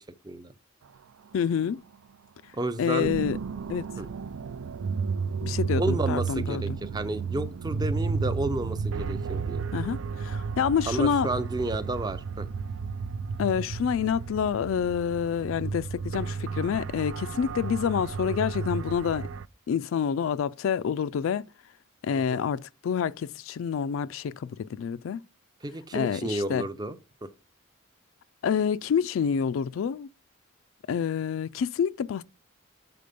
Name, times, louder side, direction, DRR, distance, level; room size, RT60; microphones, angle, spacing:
voice 1, 1.3-1.8 2.8-3.4 3.7-3.9 5.4-6.6 9.7-11.3 13.4-19.3 19.7-21.4 22.0-25.2 25.9-26.7 28.4-30.1 30.9-32.2, left 7 dB, 75° left, 0.3 m, -27 dB
voice 2, 2.5-3.1 4.0-4.1 5.7-9.6 10.9-12.5 22.3-22.4 25.6-27.3, right 2 dB, 20° right, 0.5 m, -31 dB
sound 1, 3.0-19.5, right 5 dB, 80° right, 0.4 m, -32 dB
6.8 x 4.1 x 5.1 m
head